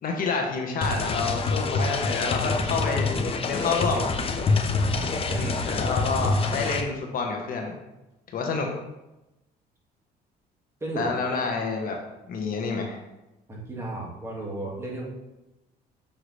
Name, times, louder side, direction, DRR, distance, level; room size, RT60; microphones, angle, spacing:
voice 1, 0.0-3.1 3.4-4.1 5.4-7.8 8.3-8.7 11.0-12.0 12.3-13.0, left 4 dB, 55° left, 2 dB, 1.1 m, -28 dB
sound 1, 0.8-6.8, left 3 dB, 35° left, 0.7 m, -26 dB
voice 2, 4.9-5.6 10.8-11.1 13.5-15.0, right 2 dB, 15° right, -3 dB, 2.0 m, -34 dB
6.7 x 5.6 x 3.3 m, 0.97 s
cardioid pair, 110°, 17 cm